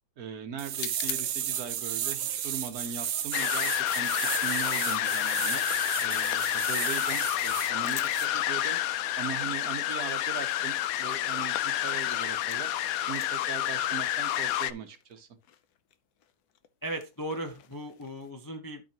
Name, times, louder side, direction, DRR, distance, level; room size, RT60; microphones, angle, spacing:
voice 1, 0.2-8.8 9.2-15.3, right 7 dB, 55° right, 1.3 m, -40 dB
sound 1, 0.6-7.7 8.1-8.3, right 10 dB, 80° right, 1.6 m, -34 dB
sound 2, 0.7-12.8 13.0-18.3, left 11 dB, 65° left, 1.1 m, -48 dB
sound 3, 3.3-14.7, left 13 dB, 85° left, 0.7 m, -29 dB
voice 2, 16.8-18.8, right 1 dB, 35° left, 0.3 m, -37 dB
12.0 x 5.0 x 2.9 m
omnidirectional pair, 2.1 m